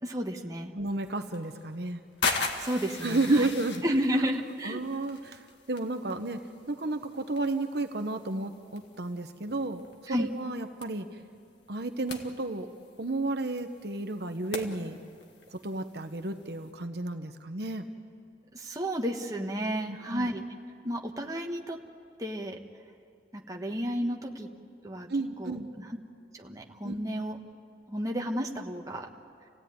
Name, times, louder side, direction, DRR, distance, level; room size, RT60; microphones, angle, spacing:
voice 1, 0.0-0.7 2.6-3.5 3.8-4.8 10.1-10.3 18.5-20.4 20.8-21.8 22.2-22.6 23.3-24.5 24.8-25.1 25.4-26.0 26.3-27.4 27.9-29.1, equal, 20° right, 1 dB, 1.5 m, -32 dB
voice 2, 0.7-2.0 3.0-3.8 4.6-9.8 10.1-11.1 11.7-12.7 13.0-15.0 15.5-17.9 19.9-20.3 25.1-25.7 26.8-27.0, right 2 dB, 60° right, 7 dB, 1.0 m, -32 dB
sound 1, 0.9-16.7, left 4 dB, 75° left, 1.9 m, -40 dB
28.5 x 16.5 x 9.4 m, 2.3 s
head